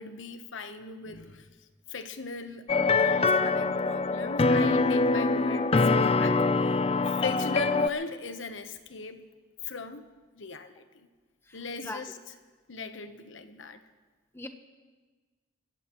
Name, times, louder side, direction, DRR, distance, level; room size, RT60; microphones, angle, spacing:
voice 1, 0.0-1.5 1.9-6.8 7.1-9.3 9.6-10.1 10.3-11.1 11.5-12.2 12.7-13.8, left 3 dB, 80° left, 9 dB, 1.0 m, -38 dB
sound 1, 2.7-7.9, left 3 dB, 30° left, 0.4 m, -24 dB
voice 2, 11.5-12.0 14.3-14.5, left 1 dB, 15° left, 6 dB, 1.0 m, -40 dB
30.0 x 15.0 x 3.1 m, 1.4 s
head